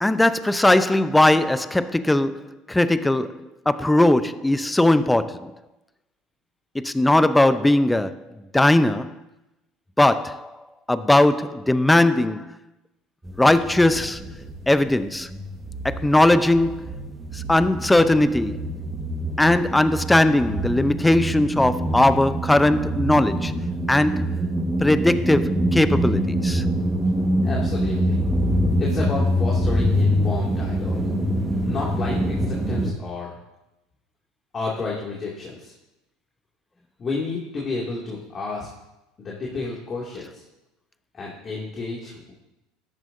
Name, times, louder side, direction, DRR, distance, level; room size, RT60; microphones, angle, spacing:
voice 1, 0.0-5.5 6.7-8.2 8.5-9.2 10.0-10.5 10.9-12.5 13.4-14.2 14.7-15.3 15.8-16.9 17.3-18.6 19.4-23.5 23.9-24.3 24.8-26.6, left 1 dB, 10° left, 0.6 m, -19 dB
sound 1, 13.2-14.9 15.1-32.9, equal, 10° right, 1.5 m, -25 dB
voice 2, 27.4-28.2 28.8-31.0 31.6-33.4 34.5-35.7 37.0-38.7 39.2-40.4 41.1-42.3, left 3 dB, 35° left, 2.4 m, -31 dB
13.5 x 10.5 x 2.7 m
hypercardioid pair, 75°, 0 cm